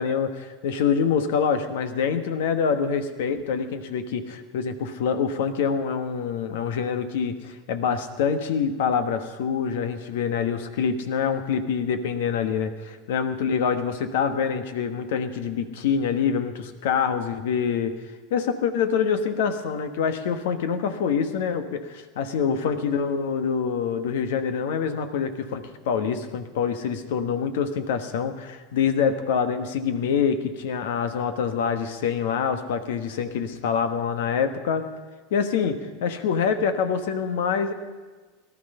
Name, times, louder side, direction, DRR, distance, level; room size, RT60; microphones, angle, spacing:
voice 1, 0.0-18.0 18.3-34.9 35.3-37.7, left 6 dB, 70° left, 9 dB, 1.3 m, -25 dB
18.0 x 12.0 x 5.5 m, 1.3 s
hypercardioid pair, 90°, 0 cm